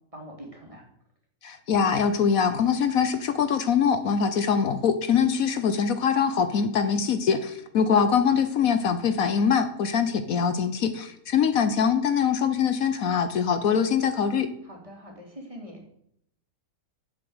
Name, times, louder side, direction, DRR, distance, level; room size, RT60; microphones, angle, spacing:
voice 1, 0.1-0.8 14.6-15.9, equal, 20° right, 0 dB, 3.1 m, -43 dB
voice 2, 1.4-14.5, left 6 dB, 70° left, 10 dB, 1.3 m, -23 dB
10.5 x 7.5 x 8.0 m, 0.73 s
omnidirectional pair, 1.6 m